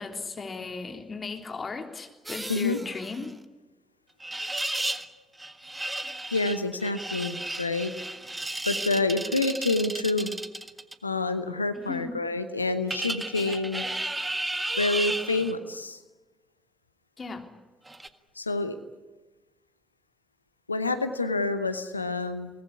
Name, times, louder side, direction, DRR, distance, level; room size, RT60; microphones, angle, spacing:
voice 1, 0.0-3.3 11.7-12.1 17.2-17.5, left 4 dB, 35° left, 4 dB, 3.5 m, -36 dB
sound 1, 2.3-3.3 4.2-5.1 5.4-10.9 12.9-15.5 17.9-18.1, right 1 dB, 15° right, 1.6 m, -33 dB
voice 2, 6.3-7.9 8.6-10.4 11.0-13.8 14.8-16.0 18.4-18.8 20.7-22.5, left 3 dB, 85° left, 10 dB, 0.9 m, -28 dB
23.0 x 19.5 x 9.8 m, 1.2 s
figure-of-eight pair, 40°, 0 cm